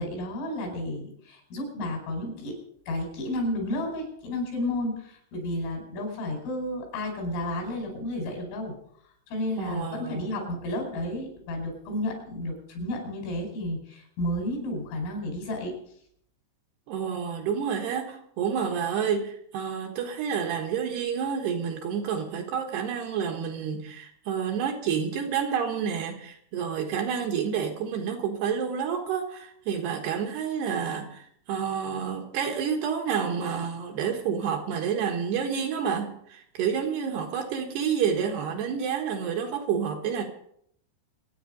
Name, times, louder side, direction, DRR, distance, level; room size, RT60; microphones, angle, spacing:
voice 1, 0.0-2.6 2.9-8.7 9.3-15.8, left 1 dB, 80° left, 7.6 m, -32 dB
voice 2, 9.6-10.5 16.9-40.2, right 7 dB, 65° right, 3.0 m, -29 dB
26.5 x 9.5 x 5.2 m
omnidirectional pair, 5.8 m